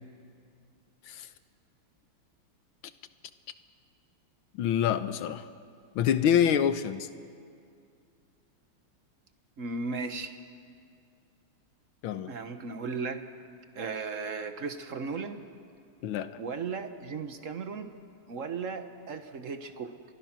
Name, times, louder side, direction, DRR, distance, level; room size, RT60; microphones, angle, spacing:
voice 1, 4.5-5.5 5.9-7.1 12.0-12.3 16.0-16.3, left 9 dB, 75° left, 11 dB, 1.7 m, -26 dB
voice 2, 9.6-10.3 12.3-13.2 13.7-15.4 16.4-17.9 18.3-19.9, right 4 dB, 45° right, 8 dB, 1.3 m, -36 dB
29.5 x 23.5 x 6.1 m, 2.3 s
omnidirectional pair, 2.4 m